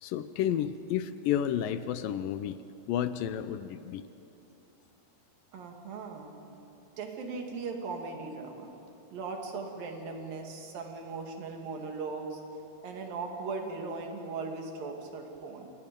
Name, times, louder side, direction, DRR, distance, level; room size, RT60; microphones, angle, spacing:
voice 1, 0.0-2.6 2.9-4.1, left 10 dB, 80° left, 12 dB, 2.1 m, -31 dB
voice 2, 5.5-6.3 7.0-8.7 9.1-12.4 12.8-15.7, right 4 dB, 65° right, 2 dB, 3.8 m, -38 dB
28.5 x 27.5 x 5.3 m, 2.9 s
omnidirectional pair, 4.5 m